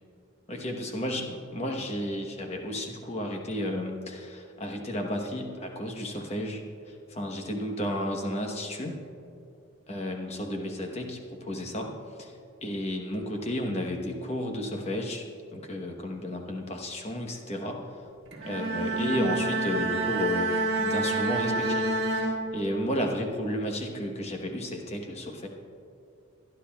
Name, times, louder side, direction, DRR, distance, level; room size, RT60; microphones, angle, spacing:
voice 1, 0.5-6.6 7.1-9.0 9.9-12.3 12.6-15.2 15.5-17.8 18.4-25.5, left 1 dB, 30° left, 3 dB, 1.0 m, -32 dB
Bowed string instrument, 18.3-23.0, right 2 dB, 55° right, 1.7 m, -28 dB
22.0 x 11.0 x 2.3 m, 2.6 s
head